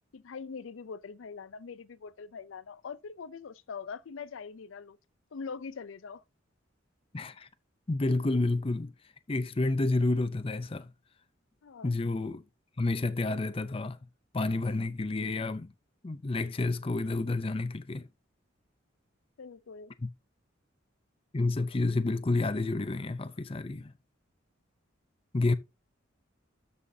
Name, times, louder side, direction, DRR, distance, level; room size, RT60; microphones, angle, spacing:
voice 1, 0.1-5.0 5.3-6.2 11.6-11.9 19.4-19.9, left 5 dB, 80° left, 0.5 m, -43 dB
voice 2, 7.1-7.5 7.9-8.9 9.3-10.9 11.8-12.4 12.8-14.0 14.3-15.7 16.0-18.1 20.0-20.1 21.3-23.9 25.3-25.5, left 2 dB, 30° left, 0.5 m, -29 dB
13.0 x 5.6 x 2.7 m
head